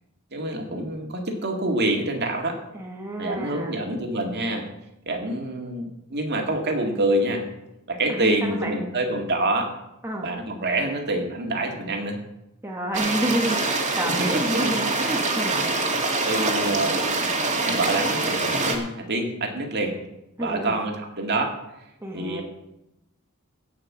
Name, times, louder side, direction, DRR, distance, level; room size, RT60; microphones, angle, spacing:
voice 1, 0.3-2.6 3.2-4.7 5.1-7.5 7.9-9.7 10.2-12.2 14.2-14.7 16.2-17.0 17.6-20.0 20.4-21.6 22.1-22.4, right 1 dB, 50° right, 3 dB, 2.1 m, -26 dB
voice 2, 2.7-3.8 8.1-8.9 10.0-10.3 12.6-15.9 20.4-20.8 22.0-22.4, right 1 dB, 10° right, 0 dB, 1.5 m, -30 dB
sound 1, 12.9-18.8, right 3 dB, 35° right, 2.1 m, -24 dB
17.0 x 5.8 x 7.2 m, 0.87 s
head